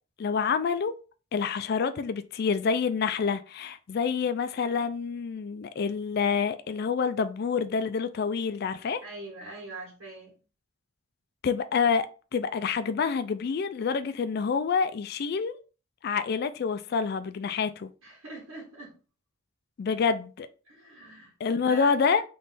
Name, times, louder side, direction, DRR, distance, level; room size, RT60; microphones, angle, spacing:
voice 1, 0.2-0.9 1.3-9.0 11.4-12.1 12.3-15.6 16.0-17.9 19.8-20.5 21.4-22.2, left 5 dB, 50° left, 0.3 m, -27 dB
voice 2, 9.0-10.3 18.0-18.9 20.6-22.0, right 2 dB, 90° right, 1.7 m, -43 dB
3.5 x 3.1 x 4.1 m
head